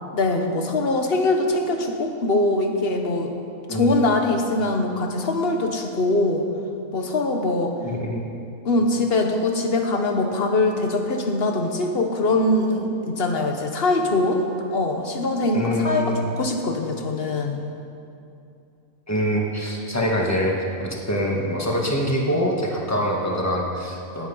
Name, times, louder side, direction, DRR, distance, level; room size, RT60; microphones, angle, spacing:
voice 1, 0.1-3.3 3.7-6.5 6.9-7.8 8.6-17.6, left 2 dB, 45° left, 4 dB, 1.3 m, -22 dB
voice 2, 3.7-4.0 7.8-8.2 15.5-16.3 19.1-24.3, equal, 10° left, -1 dB, 1.7 m, -24 dB
18.0 x 8.0 x 5.6 m, 2.6 s
omnidirectional pair, 1.5 m